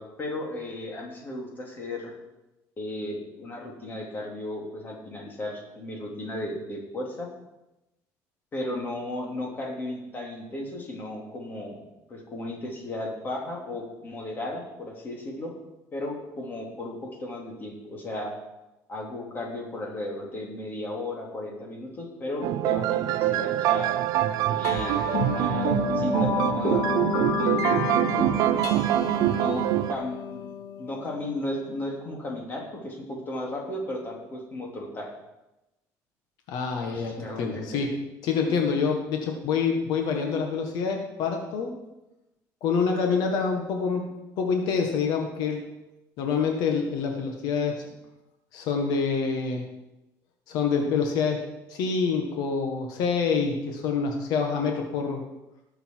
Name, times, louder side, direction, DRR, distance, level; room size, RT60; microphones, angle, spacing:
voice 1, 0.0-2.1 2.8-7.3 8.5-11.8 12.1-15.5 15.9-18.3 18.9-23.9 24.5-26.9 27.3-27.9 29.2-29.6 29.9-30.5 30.8-35.1 36.8-37.7, left 1 dB, 30° left, -1 dB, 3.0 m, -35 dB
sound 1, 22.4-30.0, right 13 dB, 70° right, 0.5 m, -24 dB
sound 2, 24.6-31.5, left 9 dB, 50° left, 0.5 m, -31 dB
voice 2, 36.5-38.0 38.2-41.7 42.6-45.6 46.2-47.9 48.5-49.6 50.5-55.2, left 5 dB, 75° left, 3 dB, 1.6 m, -26 dB
19.0 x 6.9 x 4.7 m, 0.96 s
cardioid pair, 150°, 7 cm